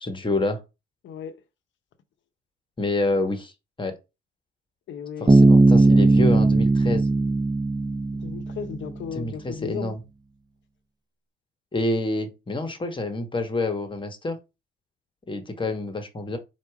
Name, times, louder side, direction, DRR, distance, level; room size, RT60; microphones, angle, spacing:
voice 1, 0.0-0.6 2.8-3.5 3.8-4.0 5.2-7.1 9.1-10.0 11.7-14.4 15.3-16.4, left 2 dB, 25° left, 1.1 m, -27 dB
voice 2, 1.0-1.4 4.9-5.5 8.2-10.0, left 7 dB, 70° left, 0.8 m, -35 dB
Bass guitar, 5.3-8.9, right 2 dB, 20° right, 0.7 m, -18 dB
4.5 x 2.4 x 4.7 m
cardioid pair, 90°, 20 cm